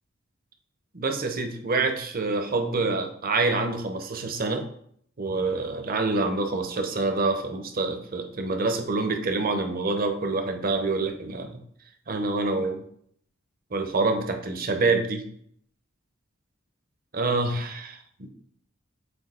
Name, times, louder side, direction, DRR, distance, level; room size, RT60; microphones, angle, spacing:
voice 1, 0.9-4.7 5.2-11.6 12.1-12.8 13.7-15.3 17.1-18.3, right 3 dB, 45° right, 6 dB, 0.8 m, -26 dB
7.8 x 2.8 x 4.2 m, 0.65 s
head